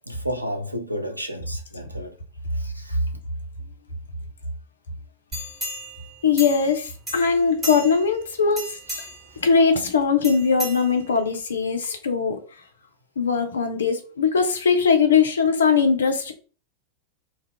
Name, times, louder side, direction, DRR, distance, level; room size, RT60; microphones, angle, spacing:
voice 1, 0.0-2.2 2.5-3.1 8.9-9.4, equal, 90° right, 0.4 m, -33 dB
sound 1, 5.3-6.8 7.1-8.1 8.5-9.3 10.2-11.3 11.8-11.9, equal, 10° right, 1.2 m, -34 dB
voice 2, 6.2-8.8 9.4-12.4 13.2-16.3, left 5 dB, 70° left, 0.5 m, -20 dB
2.3 x 2.1 x 3.4 m
figure-of-eight pair, 90°, 0 cm